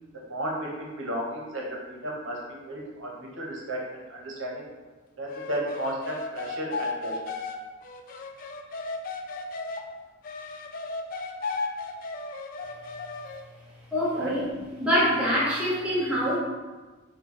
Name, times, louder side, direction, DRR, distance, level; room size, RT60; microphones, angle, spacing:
voice 1, 0.3-2.4 2.7-4.6 5.2-7.2 14.1-14.3, right 1 dB, 70° right, -2 dB, 0.9 m, -33 dB
sound 1, 5.3-9.8 10.2-13.4, left 3 dB, 40° left, 0.3 m, -35 dB
voice 2, 13.9-14.4 14.8-16.4, equal, 5° right, -8 dB, 0.8 m, -24 dB
4.4 x 2.2 x 4.2 m, 1.3 s
head